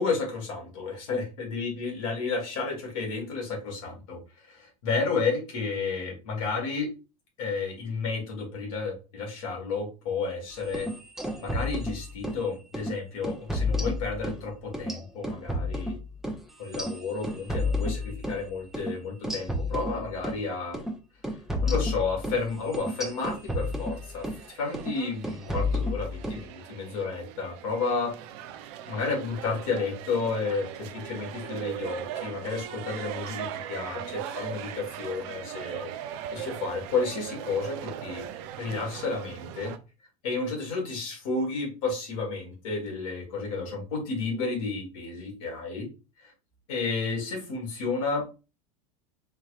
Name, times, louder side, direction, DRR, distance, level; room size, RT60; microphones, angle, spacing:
voice 1, 0.0-4.2 4.5-6.9 7.4-10.9 11.4-15.9 16.6-20.8 21.6-28.1 28.9-35.9 36.3-38.2 38.6-39.7 40.2-45.9 46.2-46.3 46.7-48.2, left 4 dB, 65° left, 0 dB, 1.8 m, -31 dB
sound 1, 10.6-12.4 12.7-12.9 13.2-14.4 14.7-18.4 18.7-18.9 19.2-20.4 20.7-20.9 21.2-24.4 24.7-25.0 25.2-26.4, left 2 dB, ahead, 0.8 m, -31 dB
sound 2, 23.7-39.8, right 10 dB, 50° right, 0.5 m, -39 dB
4.3 x 3.0 x 2.5 m, 0.30 s
figure-of-eight pair, 80°, 19 cm